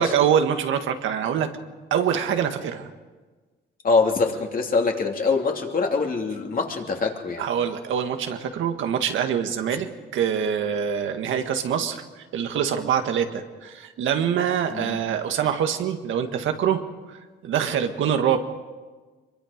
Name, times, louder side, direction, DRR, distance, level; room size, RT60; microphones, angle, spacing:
voice 1, 0.0-1.5 1.9-2.9 7.4-16.8 17.1-17.2 17.4-18.4, right 8 dB, 80° right, 6 dB, 1.8 m, -24 dB
voice 2, 3.8-7.4 14.7-15.0, left 4 dB, 45° left, 2 dB, 2.9 m, -24 dB
24.0 x 22.5 x 5.2 m, 1.3 s
cardioid pair, 90°, 20 cm